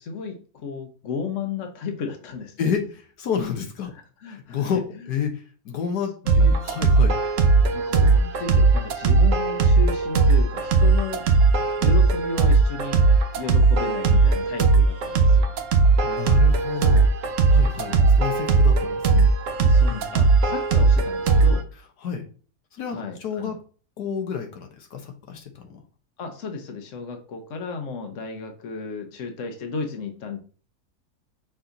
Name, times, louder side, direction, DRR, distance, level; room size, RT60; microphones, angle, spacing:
voice 1, 0.0-2.7 4.2-4.7 6.2-6.4 7.7-11.2 11.8-13.0 13.4-15.5 17.7-18.4 19.6-21.7 22.9-23.6 26.2-30.4, left 5 dB, 55° left, 5 dB, 1.3 m, -34 dB
voice 2, 2.6-3.9 4.2-7.2 15.0-15.4 16.0-17.1 17.5-19.3 19.9-20.1 22.0-22.3 22.7-23.6 24.0-25.8, left 7 dB, 85° left, 4 dB, 1.5 m, -30 dB
sound 1, 6.3-21.6, right 4 dB, 60° right, 1.0 m, -18 dB
5.8 x 4.3 x 4.0 m, 0.39 s
omnidirectional pair, 1.7 m